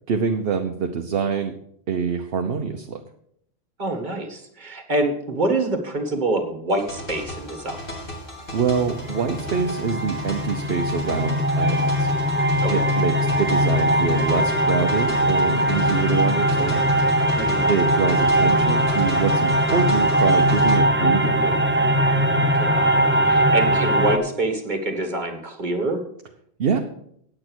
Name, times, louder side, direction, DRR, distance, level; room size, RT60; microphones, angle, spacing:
voice 1, 0.1-1.5 1.9-3.0 8.5-12.1 12.7-16.8 17.7-21.6 26.6-26.8, right 6 dB, 65° right, 5 dB, 1.0 m, -25 dB
voice 2, 3.8-7.9 12.6-12.9 17.3-17.7 22.5-26.0, right 2 dB, 45° right, 6 dB, 1.8 m, -26 dB
sound 1, 6.7-20.8, left 1 dB, 55° left, 2.6 m, -36 dB
sound 2, 8.8-24.2, right 1 dB, 10° right, 0.7 m, -20 dB
9.0 x 8.7 x 6.2 m, 0.70 s
omnidirectional pair, 1.1 m